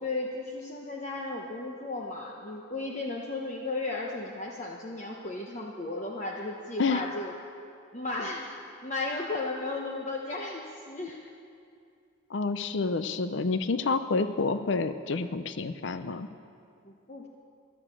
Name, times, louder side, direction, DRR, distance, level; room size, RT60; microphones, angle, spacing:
voice 1, 0.0-7.3 7.9-8.5 8.8-11.2 16.8-17.3, left 2 dB, 35° left, -1 dB, 1.0 m, -35 dB
voice 2, 12.3-16.3, left 4 dB, 60° left, 11 dB, 0.5 m, -28 dB
15.0 x 11.0 x 7.6 m, 2.4 s
head